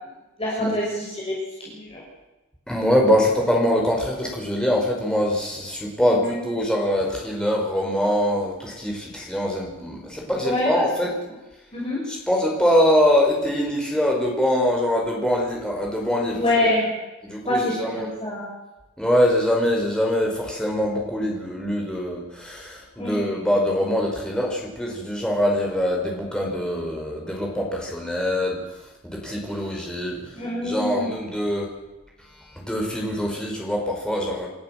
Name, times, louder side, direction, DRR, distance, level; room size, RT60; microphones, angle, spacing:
voice 1, 0.4-2.0 6.0-6.4 10.3-10.8 11.7-12.0 16.3-16.9 17.5-18.5 22.9-23.4 30.4-31.2, left 1 dB, 25° left, -5 dB, 6.7 m, -26 dB
voice 2, 2.7-11.1 12.1-16.4 17.2-18.1 19.0-28.6 29.0-30.3 30.6-31.7 32.5-34.5, equal, 5° left, -1 dB, 5.3 m, -23 dB
28.0 x 14.5 x 7.8 m, 1.0 s
head